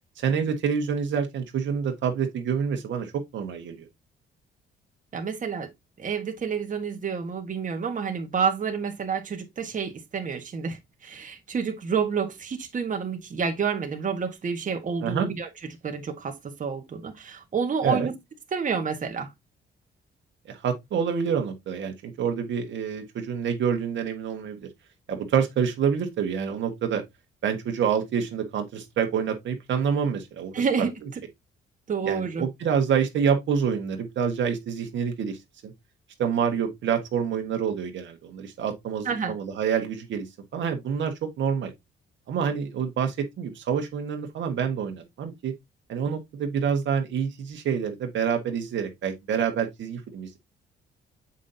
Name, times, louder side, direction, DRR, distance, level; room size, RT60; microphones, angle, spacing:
voice 1, 0.2-3.9 15.0-15.3 17.8-18.1 20.5-24.7 25.1-27.0 27.4-30.6 32.0-35.7 36.2-40.3 40.5-41.7 42.3-45.5 45.9-50.4, right 7 dB, 70° right, 1.6 m, -27 dB
voice 2, 5.1-5.7 6.0-15.5 15.8-18.1 18.5-19.3 30.5-30.9 31.9-32.4 39.0-39.3, right 6 dB, 40° right, 1.5 m, -29 dB
7.3 x 5.4 x 2.8 m
cardioid pair, 90°, 20 cm